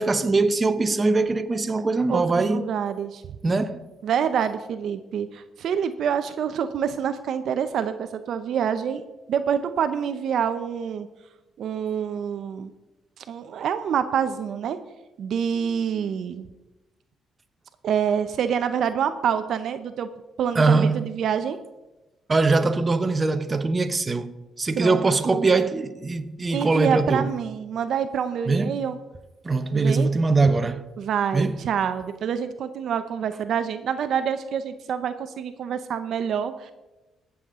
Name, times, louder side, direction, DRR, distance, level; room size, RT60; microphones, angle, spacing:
voice 1, 0.0-2.7 3.4-3.8 20.5-21.0 22.3-27.3 28.5-28.8 29.4-30.8 31.3-31.6, right 3 dB, 30° right, 0.9 m, -22 dB
voice 2, 2.1-3.2 4.0-11.1 11.6-12.7 13.3-14.8 15.2-16.5 17.8-20.1 20.4-21.6 24.8-25.5 26.5-29.0 29.7-30.1 31.0-36.7, right 8 dB, 70° right, 0.7 m, -27 dB
19.0 x 7.2 x 3.7 m
cardioid pair, 90°, 0 cm